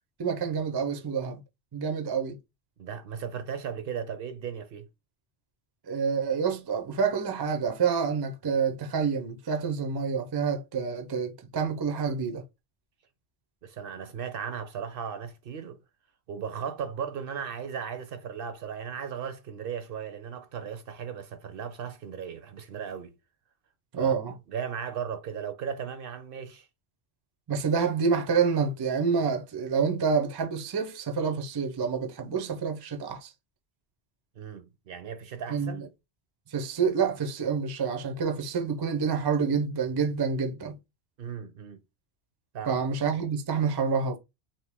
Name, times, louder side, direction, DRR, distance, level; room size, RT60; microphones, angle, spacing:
voice 1, 0.2-1.4 1.7-2.4 5.9-12.4 23.9-24.3 27.5-33.3 35.5-35.7 36.5-40.8 42.7-44.2, right 6 dB, 35° right, 0.4 m, -28 dB
voice 2, 2.8-4.9 13.6-15.8 16.3-23.1 24.0-24.1 24.5-26.7 34.4-35.9 41.2-41.8 42.5-42.8, right 7 dB, 65° right, 0.7 m, -36 dB
2.9 x 2.6 x 3.4 m
omnidirectional pair, 1.1 m